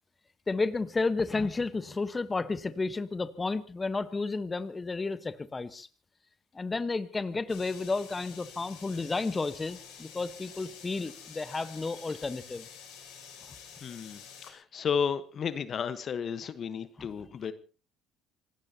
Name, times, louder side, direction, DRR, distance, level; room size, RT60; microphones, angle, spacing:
voice 1, 0.5-5.9 6.5-12.6, left 3 dB, 25° left, 12 dB, 1.2 m, -32 dB
sound 1, 7.5-14.5, left 7 dB, 75° left, 6.7 m, -49 dB
voice 2, 13.8-17.5, left 7 dB, 50° left, 13 dB, 1.2 m, -33 dB
27.0 x 18.0 x 2.9 m, 0.37 s
hypercardioid pair, 65°, 0 cm